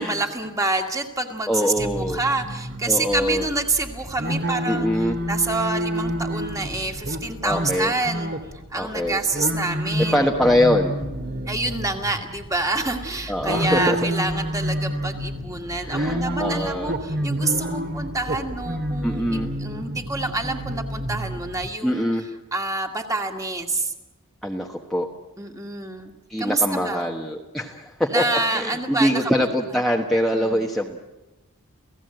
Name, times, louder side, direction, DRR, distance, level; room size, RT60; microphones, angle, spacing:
voice 1, 0.0-8.3 8.7-10.3 11.5-19.2 19.6-22.0 22.5-23.9 25.4-26.1 26.4-27.1 28.1-29.3 30.3-30.7, right 2 dB, 15° right, 3 dB, 2.0 m, -27 dB
voice 2, 1.5-2.2 2.9-3.5 4.7-5.2 7.4-7.9 8.7-9.2 10.1-11.0 13.3-14.0 15.8-16.9 19.0-19.5 21.8-22.2 24.4-25.1 26.3-28.2 28.5-31.0, equal, ahead, -1 dB, 1.2 m, -23 dB
sound 1, 1.8-21.7, equal, 45° right, 2.1 m, -29 dB
29.0 x 17.0 x 7.9 m, 1.1 s
head